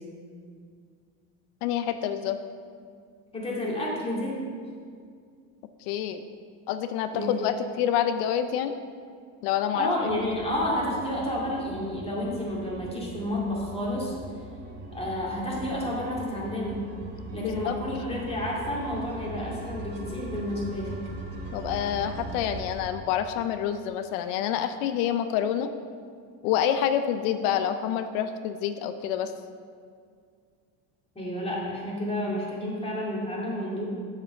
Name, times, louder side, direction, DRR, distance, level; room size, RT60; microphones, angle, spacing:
voice 1, 1.6-2.4 5.8-6.2 6.7-8.7 9.4-10.1 17.4-17.8 21.5-25.7 26.4-29.3, left 9 dB, 90° left, 9 dB, 0.6 m, -27 dB
voice 2, 3.3-4.4 7.1-7.5 9.7-14.2 14.9-16.9 17.3-21.0 31.2-33.9, left 1 dB, 15° left, -5 dB, 2.3 m, -30 dB
sound 1, 10.1-22.8, right 1 dB, 50° right, 2.2 m, -40 dB
7.5 x 5.0 x 6.6 m, 2.1 s
cardioid pair, 125°, 43 cm